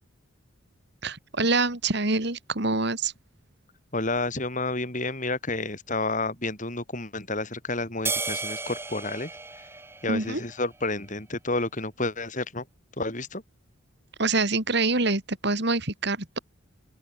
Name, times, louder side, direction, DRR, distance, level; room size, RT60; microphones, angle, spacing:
voice 1, 1.0-3.1 10.1-10.4 14.2-16.4, right 3 dB, 55° right, 3.1 m, -25 dB
voice 2, 3.9-9.3 10.0-12.7 13.0-13.4, left 2 dB, 40° left, 5.4 m, -30 dB
sound 1, 8.1-10.7, right 4 dB, 10° right, 1.1 m, -33 dB
open air
head